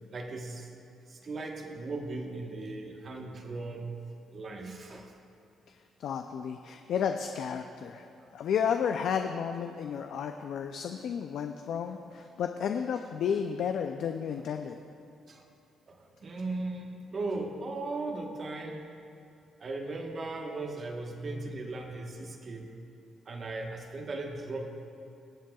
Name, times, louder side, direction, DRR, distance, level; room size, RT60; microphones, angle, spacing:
voice 1, 0.1-0.7 1.1-3.9 4.3-5.1 8.1-8.3 11.9-12.2 15.3-15.4 15.9-18.8 19.6-22.7 23.3-24.6, right 2 dB, 45° right, 2 dB, 1.2 m, -37 dB
voice 2, 6.0-8.1 8.3-14.8, left 7 dB, 70° left, 5 dB, 0.4 m, -32 dB
21.5 x 7.5 x 2.3 m, 2.5 s
cardioid pair, 90°, 0 cm